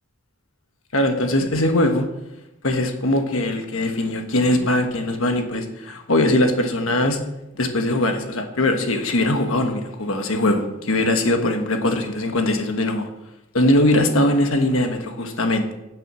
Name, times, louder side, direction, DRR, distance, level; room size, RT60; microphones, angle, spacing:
voice 1, 0.9-2.1 2.6-7.2 7.5-13.1 13.5-15.7, left 1 dB, 85° left, 5 dB, 1.3 m, -21 dB
9.3 x 8.7 x 6.2 m, 0.93 s
head